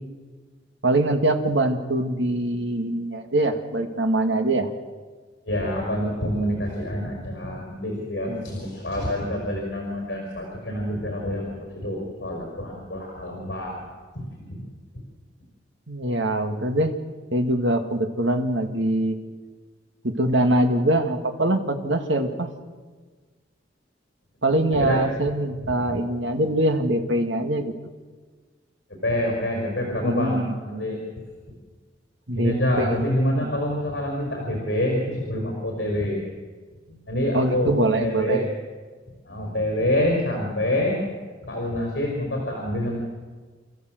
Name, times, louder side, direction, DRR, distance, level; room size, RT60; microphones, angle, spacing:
voice 1, 0.8-4.7 8.3-8.6 15.9-16.9 17.3-19.2 20.0-22.5 24.4-27.7 30.0-30.6 32.3-33.1 33.4-33.5 37.3-38.5, right 1 dB, 75° right, 6 dB, 2.2 m, -23 dB
voice 2, 5.4-13.8 14.1-14.6 24.7-25.0 25.6-26.0 29.0-31.0 32.3-36.2 37.1-38.4 39.2-41.0 41.4-43.0, left 1 dB, 65° left, 0 dB, 5.2 m, -26 dB
29.0 x 14.5 x 7.9 m, 1.4 s
head